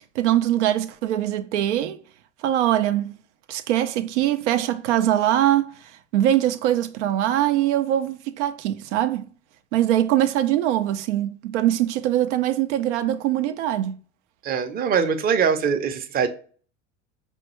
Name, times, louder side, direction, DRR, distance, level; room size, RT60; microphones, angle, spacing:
voice 1, 0.1-2.0 2.4-3.1 3.5-9.3 9.7-14.0, right 12 dB, 85° right, 0.5 m, -22 dB
voice 2, 14.4-16.3, right 6 dB, 25° right, 0.6 m, -22 dB
5.0 x 2.2 x 3.0 m
supercardioid pair, 100°, 34 cm